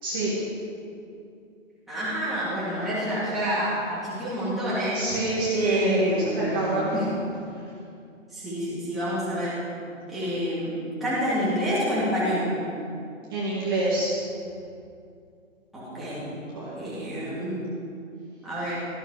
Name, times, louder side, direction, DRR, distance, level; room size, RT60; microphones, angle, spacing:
voice 1, 0.0-0.3 4.9-7.1 13.3-14.1 16.5-16.7, right 2 dB, 15° right, -8 dB, 1.9 m, -26 dB
voice 2, 1.9-5.0 5.5-6.6 6.9-7.1 8.3-9.6 10.1-10.7 11.0-12.4 15.7-16.2 16.8-17.6 18.4-18.8, equal, ahead, -12 dB, 2.4 m, -27 dB
16.5 x 15.0 x 5.0 m, 2.5 s
hypercardioid pair, 175°, 40 cm